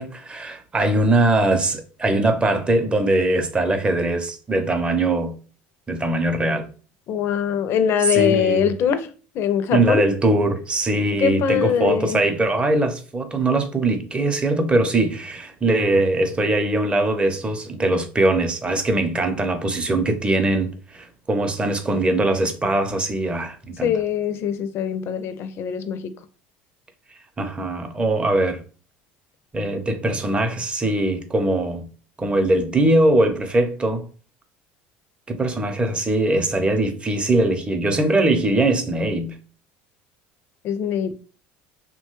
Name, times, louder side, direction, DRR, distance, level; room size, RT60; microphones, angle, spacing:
voice 1, 0.0-5.3 5.9-6.7 8.0-8.7 9.7-23.9 27.4-28.6 29.5-31.9 32.2-34.0 35.3-39.4, right 2 dB, 20° right, 0.5 m, -21 dB
voice 2, 7.1-9.1 9.3-10.0 11.2-12.2 23.8-26.0 40.6-41.1, left 8 dB, 55° left, 0.4 m, -22 dB
2.9 x 2.2 x 3.0 m
supercardioid pair, 95°, 5 cm